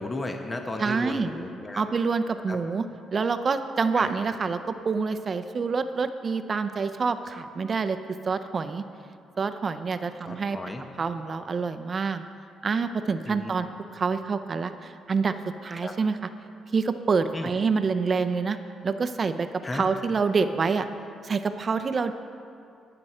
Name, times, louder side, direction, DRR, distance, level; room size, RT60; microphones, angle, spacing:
voice 1, 0.0-1.8 2.5-2.6 3.9-4.1 10.2-10.8 13.2-13.7 15.8-16.0 17.3-17.5 19.6-19.9, left 2 dB, 20° left, 4 dB, 1.1 m, -34 dB
voice 2, 0.8-1.3 1.7-8.0 8.2-8.8 9.4-10.6 11.0-12.2 12.6-13.7 13.9-15.3 15.6-16.2 16.7-19.5 19.7-20.9 21.2-22.1, right 5 dB, 40° right, 10 dB, 0.7 m, -27 dB
21.0 x 7.9 x 4.4 m, 2.5 s
cardioid pair, 90°, 0 cm